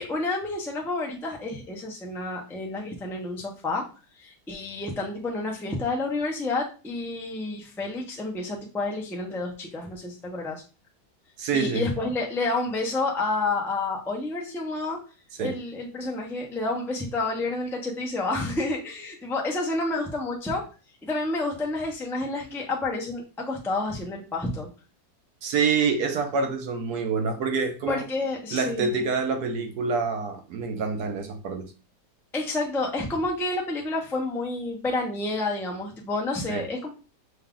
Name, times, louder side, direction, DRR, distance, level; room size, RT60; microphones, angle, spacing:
voice 1, 0.0-3.8 4.2-10.6 11.5-15.0 15.4-20.6 21.0-24.7 27.9-28.9 32.3-36.9, left 2 dB, 5° left, 0.3 m, -29 dB
voice 2, 11.4-11.9 15.4-15.6 25.4-28.0 28.5-31.7 36.5-36.7, right 5 dB, 70° right, 1.1 m, -26 dB
5.5 x 2.3 x 3.7 m
omnidirectional pair, 1.9 m